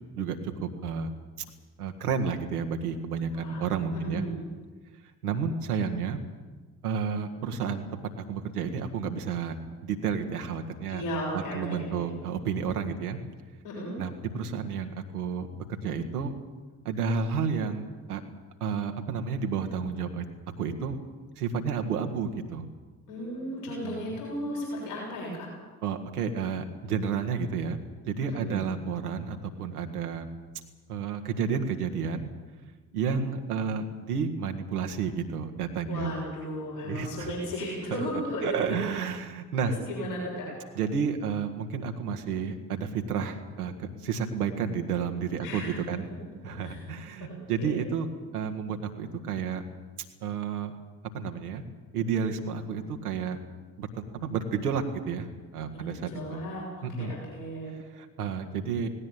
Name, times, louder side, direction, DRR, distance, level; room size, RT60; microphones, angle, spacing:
voice 1, 0.2-1.1 1.4-1.5 1.8-4.2 5.2-6.2 6.8-7.8 8.1-9.5 9.8-11.0 11.3-13.2 14.0-16.3 16.8-18.2 18.6-20.2 20.6-21.0 21.4-22.6 23.8-24.1 25.8-30.3 30.9-32.3 32.9-36.2 36.8-37.3 37.9-38.0 38.4-39.7 40.7-46.1 46.4-48.1 48.3-49.6 50.2-50.7 51.1-51.6 51.9-53.4 53.8-55.3 55.5-56.4 56.8-57.2 57.9-58.9, right 6 dB, 80° right, 5 dB, 1.7 m, -31 dB
voice 2, 3.3-3.7 3.9-4.3 10.9-12.0 13.6-13.9 23.1-25.5 28.3-28.6 35.9-39.0 39.6-40.5 45.4-45.8 46.6-46.8 47.2-47.7 55.7-55.9 56.1-57.7, equal, 75° left, -4 dB, 7.2 m, -35 dB
18.5 x 18.0 x 9.1 m, 1.3 s
figure-of-eight pair, 40°, 45 cm